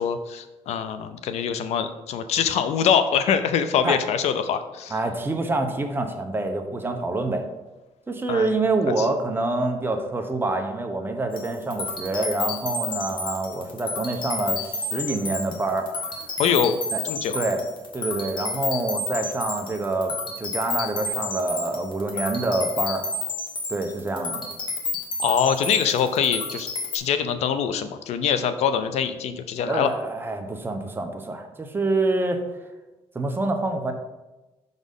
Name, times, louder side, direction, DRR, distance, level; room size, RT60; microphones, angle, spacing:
voice 1, 0.0-4.9 8.3-8.5 9.0-9.1 16.4-16.8 17.0-17.4 25.2-26.7 26.9-29.9, left 7 dB, 75° left, 10 dB, 0.6 m, -24 dB
voice 2, 4.9-7.4 8.1-16.2 16.9-17.0 17.3-17.6 17.9-23.0 23.7-24.5 29.7-32.4 33.1-33.9, right 2 dB, 20° right, 4 dB, 0.8 m, -26 dB
sound 1, 11.3-27.0, left 3 dB, 45° left, 1.3 m, -31 dB
6.2 x 4.0 x 5.4 m, 1.1 s
cardioid pair, 120°, 11 cm